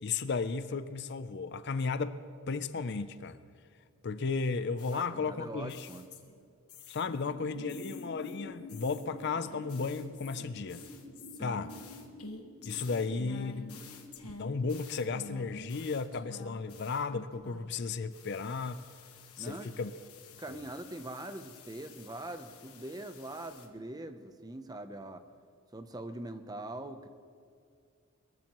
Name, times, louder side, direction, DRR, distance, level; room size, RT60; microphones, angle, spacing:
voice 1, 0.0-2.2 2.5-3.4 4.0-5.9 6.9-10.8 11.4-11.7 12.7-13.8 14.2-18.8 19.4-19.9 20.5-20.6, left 4 dB, 50° left, 13 dB, 0.5 m, -34 dB
sound 1, 4.8-7.3 7.7-17.8 18.1-23.7, left 3 dB, 85° left, 1.3 m, -51 dB
voice 2, 4.9-6.1 11.4-11.6 19.4-19.7 20.4-25.2 25.7-27.1, right 1 dB, 15° right, 9 dB, 0.6 m, -43 dB
sound 2, 7.2-15.3, left 2 dB, 30° left, 1.5 m, -48 dB
22.5 x 14.5 x 3.0 m, 2.3 s
head